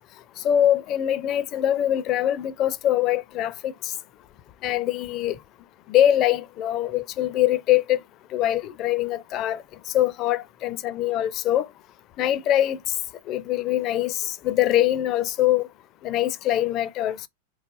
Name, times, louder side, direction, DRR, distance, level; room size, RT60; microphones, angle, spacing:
voice 1, 0.4-3.9 4.6-5.4 5.9-8.0 8.3-9.6 9.9-11.7 12.2-12.8 13.3-15.7 16.0-17.3, left 12 dB, 35° left, 0.4 m, -23 dB
4.1 x 3.2 x 2.5 m
figure-of-eight pair, 90°, 0 cm